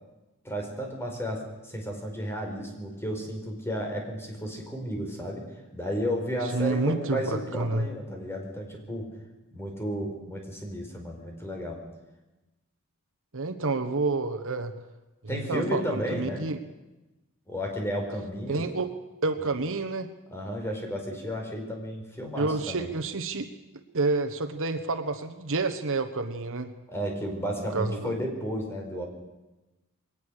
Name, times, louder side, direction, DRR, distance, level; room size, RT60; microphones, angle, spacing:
voice 1, 0.4-5.4 5.7-9.1 9.5-11.8 15.3-16.5 17.5-18.7 20.3-22.9 26.9-29.1, equal, 10° left, 1 dB, 4.6 m, -33 dB
voice 2, 6.5-7.2 7.5-7.9 13.3-14.7 15.2-16.6 18.5-18.9 19.2-20.1 22.4-23.5 23.7-26.7 27.7-28.1, right 3 dB, 60° right, 9 dB, 1.3 m, -29 dB
21.5 x 18.5 x 6.6 m, 1.1 s
head